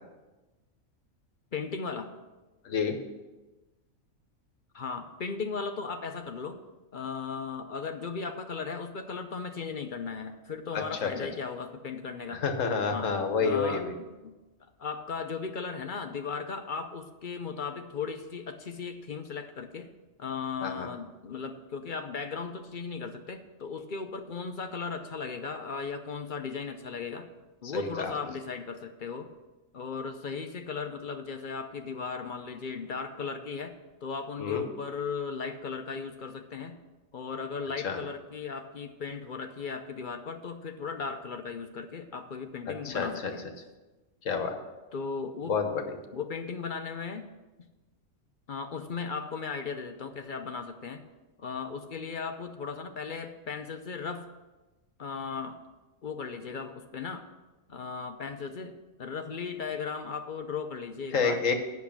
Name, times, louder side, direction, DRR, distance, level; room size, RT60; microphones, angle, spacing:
voice 1, 1.5-2.1 4.7-6.6 6.9-12.4 12.9-13.1 13.4-14.4 14.8-19.9 20.2-27.3 27.6-29.3 29.7-33.7 34.0-36.8 37.1-43.5 44.9-45.6 46.1-47.3 48.5-51.0 51.4-54.3 55.0-55.6 56.0-57.3 57.7-61.4, left 5 dB, 50° left, 6 dB, 0.7 m, -36 dB
voice 2, 2.6-3.0 10.7-11.1 12.3-13.9 20.6-20.9 27.7-28.1 34.4-34.6 37.8-38.0 42.8-43.3 44.2-44.5 45.4-45.9 61.1-61.5, left 5 dB, 70° left, 6 dB, 1.4 m, -29 dB
8.3 x 6.5 x 7.1 m, 1.1 s
omnidirectional pair, 1.4 m